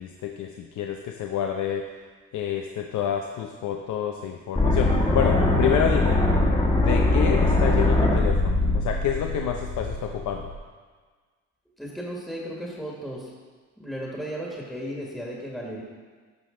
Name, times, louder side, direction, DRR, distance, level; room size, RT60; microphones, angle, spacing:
voice 1, 0.0-1.9 2.3-6.2 6.8-10.5, left 8 dB, 75° left, 3 dB, 0.7 m, -28 dB
sound 1, 4.6-10.5, left 2 dB, 20° left, 1.5 m, -22 dB
voice 2, 11.8-13.3 13.8-15.8, equal, ahead, -3 dB, 1.6 m, -35 dB
13.5 x 5.2 x 3.8 m, 1.5 s
cardioid pair, 90°, 30 cm